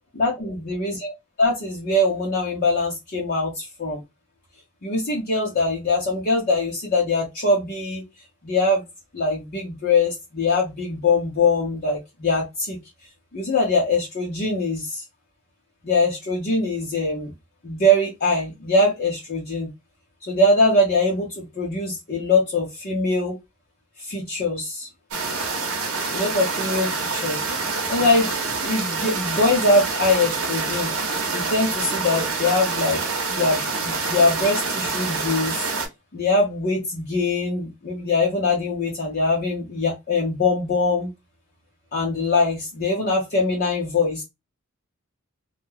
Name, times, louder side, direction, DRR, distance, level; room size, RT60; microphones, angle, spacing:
voice 1, 0.1-1.1 1.4-4.0 4.8-8.0 8.4-8.8 9.1-12.8 13.3-15.0 15.8-17.3 17.6-19.7 20.3-23.4 24.0-24.9 26.1-27.5 27.9-28.3 28.6-30.9 31.3-33.0 33.3-35.7 36.1-41.1 41.9-44.2, left 2 dB, 45° left, -3 dB, 0.7 m, -22 dB
sound 1, 25.1-35.9, right 4 dB, 75° right, 0.8 m, -26 dB
2.3 x 2.1 x 3.1 m, 0.21 s
head